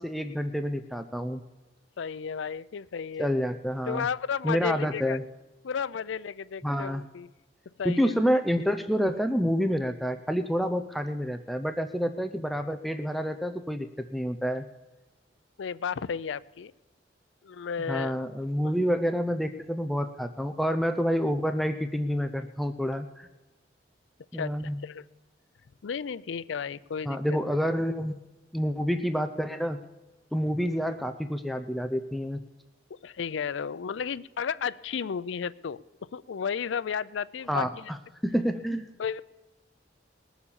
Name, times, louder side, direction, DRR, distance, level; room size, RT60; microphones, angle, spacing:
voice 1, 0.0-1.4 3.2-4.1 4.4-5.2 6.6-7.0 7.8-14.6 17.9-23.3 24.3-24.8 27.1-28.1 28.5-29.8 30.3-32.4 37.5-38.0 38.2-38.9, equal, ahead, 8 dB, 0.5 m, -28 dB
voice 2, 2.0-3.3 3.9-5.2 5.6-7.3 7.8-8.2 15.6-16.7 17.4-18.2 18.6-18.7 24.3-24.5 24.8-25.0 25.8-27.2 33.0-35.8 36.1-37.9 39.0-39.2, left 6 dB, 85° left, 18 dB, 0.4 m, -33 dB
19.5 x 7.2 x 7.0 m, 1.1 s
head